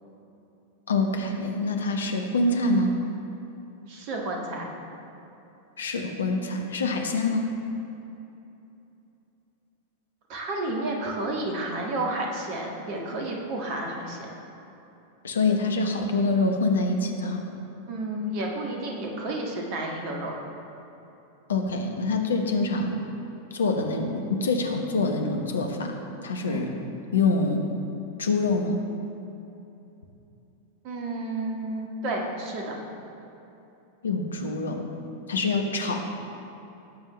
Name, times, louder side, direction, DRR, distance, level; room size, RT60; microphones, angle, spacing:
voice 1, 0.9-2.9 5.8-7.5 15.2-17.4 21.5-23.0 23.5-26.7 27.1-27.6 28.2-28.8 34.0-34.9 35.3-36.0, left 3 dB, 70° left, 4 dB, 1.1 m, -25 dB
voice 2, 3.9-4.6 10.3-14.3 17.9-20.3 26.5-26.6 30.8-32.7, right 2 dB, 45° right, 0 dB, 1.8 m, -31 dB
17.0 x 7.6 x 3.2 m, 2.9 s
figure-of-eight pair, 90°, 0 cm